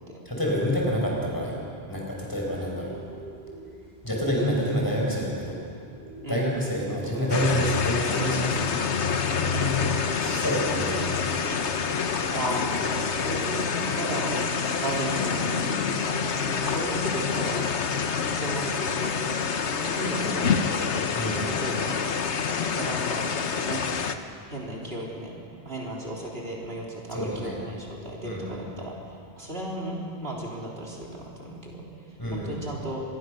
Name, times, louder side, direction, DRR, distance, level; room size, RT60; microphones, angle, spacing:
voice 1, 0.3-1.6 1.9-2.9 4.0-5.6 6.3-8.6 10.2-11.0 21.1-21.4 27.1-27.6 28.2-28.6 32.2-32.5, equal, 20° left, -3 dB, 6.0 m, -27 dB
sound 1, 2.3-17.1, right 2 dB, 40° right, 5.0 m, -45 dB
sound 2, 7.3-24.2, left 6 dB, 85° left, 1.4 m, -27 dB
voice 2, 9.5-10.1 12.3-13.7 13.9-14.4 14.8-15.7 16.6-17.7 18.3-20.7 21.3-22.0 22.8-23.2 23.6-23.8 24.5-25.3 25.6-33.0, right 1 dB, 60° right, -3 dB, 3.9 m, -35 dB
26.0 x 21.0 x 6.7 m, 2.4 s
omnidirectional pair, 1.1 m